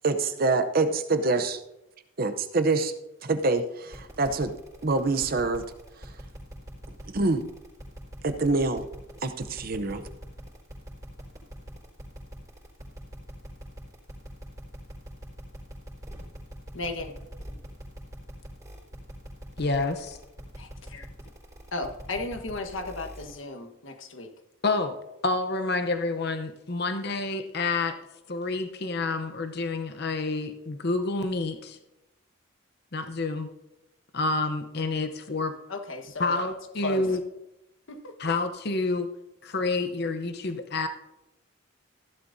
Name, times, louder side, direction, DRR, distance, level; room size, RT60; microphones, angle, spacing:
voice 1, 0.0-1.5 2.2-2.9 3.2-4.5 4.8-5.6 6.0-6.1 7.1-7.4 8.2-8.9 9.2-10.0, right 3 dB, 45° right, 9 dB, 0.7 m, -25 dB
sound 1, 3.9-23.4, equal, 15° right, 3.9 m, -43 dB
voice 2, 16.7-17.1 20.6-21.1 21.7-24.3 35.7-36.3 36.8-37.0 37.9-38.2, left 2 dB, 75° left, 6 dB, 1.4 m, -35 dB
voice 3, 19.6-20.2 24.6-25.0 25.2-28.0 28.3-31.8 32.9-33.5 34.1-35.5 36.2-37.2 38.2-39.1 39.4-40.9, left 3 dB, 55° left, 8 dB, 0.8 m, -28 dB
15.0 x 11.5 x 2.7 m, 0.91 s
head